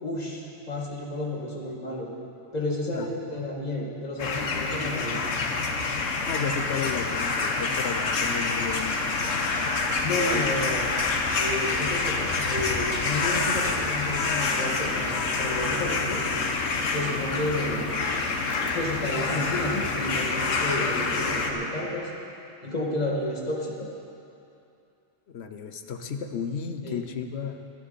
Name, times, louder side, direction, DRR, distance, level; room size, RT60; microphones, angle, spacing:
voice 1, 0.0-2.1 2.5-5.2 10.0-10.9 11.4-16.3 16.9-17.8 18.7-22.1 22.6-23.9 26.8-27.0, left 1 dB, 35° left, -3 dB, 2.1 m, -31 dB
crows jackdaws, 4.2-21.5, left 3 dB, 90° left, 1.4 m, -27 dB
voice 2, 6.3-9.0 10.3-10.9 25.3-27.6, left 6 dB, 60° left, 7 dB, 1.1 m, -33 dB
23.0 x 11.0 x 4.2 m, 2.6 s
omnidirectional pair, 1.3 m